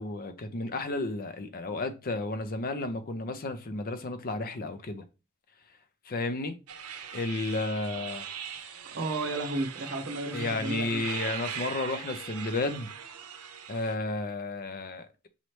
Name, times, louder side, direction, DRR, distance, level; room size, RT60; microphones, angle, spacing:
voice 1, 0.0-5.0 6.1-6.5 7.1-8.2 10.3-12.9 13.7-15.3, left 2 dB, 40° left, 0.5 m, -32 dB
sound 1, 6.7-13.9, right 7 dB, 80° right, 0.7 m, -40 dB
voice 2, 8.9-11.0, right 2 dB, 50° right, 1.0 m, -33 dB
5.5 x 3.0 x 3.1 m
head